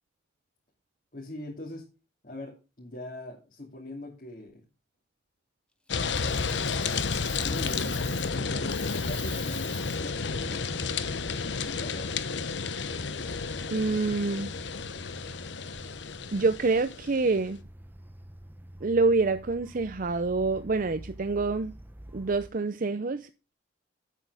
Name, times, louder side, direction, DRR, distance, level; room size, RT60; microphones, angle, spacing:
voice 1, 1.1-1.9 2.2-4.7 6.2-7.1 7.4-11.0 11.7-12.2, left 1 dB, 50° left, 2.9 m, -42 dB
sound 1, 5.9-17.3, left 5 dB, 80° left, 0.9 m, -32 dB
Coin (dropping), 6.0-8.4 8.6-10.1 12.9-13.1, left 2 dB, 5° left, 1.1 m, -44 dB
sound 2, 7.7-22.5, right 1 dB, 10° right, 0.9 m, -48 dB
voice 2, 13.7-14.5 16.3-17.6 18.8-21.7 22.1-23.5, right 3 dB, 50° right, 0.6 m, -26 dB
8.4 x 8.4 x 4.9 m
head